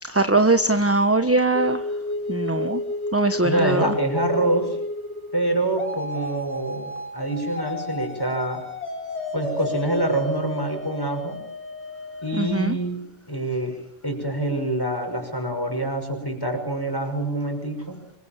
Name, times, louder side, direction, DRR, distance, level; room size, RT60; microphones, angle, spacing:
voice 1, 0.0-1.8 2.3-2.8 3.1-3.9 12.3-12.8, right 2 dB, 15° right, 8 dB, 1.1 m, -21 dB
sound 1, 1.5-12.5, left 2 dB, 70° left, 4.8 m, -32 dB
voice 2, 3.4-4.8 5.3-8.7 9.3-11.4 12.2-18.0, right 1 dB, 20° left, 4 dB, 5.9 m, -26 dB
26.0 x 23.5 x 7.3 m, 0.70 s
omnidirectional pair, 1.2 m